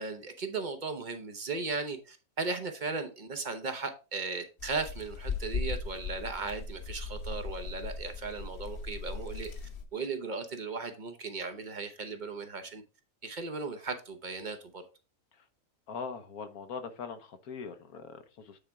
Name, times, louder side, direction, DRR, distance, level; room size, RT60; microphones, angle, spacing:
voice 1, 0.0-9.5 9.9-12.8 13.2-14.8, right 4 dB, 40° right, 0.8 m, -36 dB
sound 1, 4.6-9.8, left 4 dB, 45° left, 1.0 m, -38 dB
voice 2, 15.9-18.6, left 5 dB, 80° left, 1.4 m, -41 dB
8.9 x 4.3 x 3.5 m
omnidirectional pair, 1.5 m